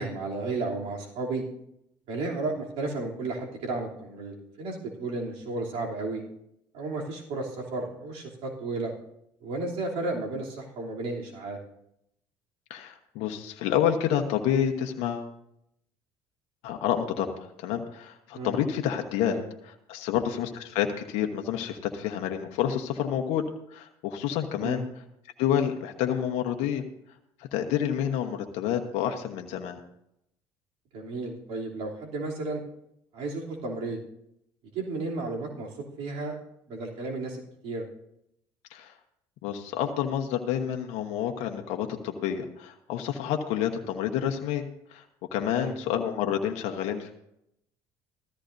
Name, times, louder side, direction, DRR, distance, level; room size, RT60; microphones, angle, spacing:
voice 1, 0.0-1.4 2.1-6.2 6.7-8.9 9.4-11.6 18.3-18.5 19.3-19.4 24.6-24.8 30.9-32.6 33.1-34.0 34.7-35.7 36.0-36.4 36.7-37.8 45.4-45.7, right 3 dB, 70° right, -2 dB, 3.1 m, -33 dB
voice 2, 12.7-15.3 16.6-19.4 19.6-24.8 25.4-26.9 27.5-29.8 38.7-38.9 39.4-45.0 45.3-47.1, left 9 dB, 75° left, 4 dB, 1.1 m, -29 dB
15.0 x 14.0 x 2.7 m, 0.77 s
supercardioid pair, 75°, 11 cm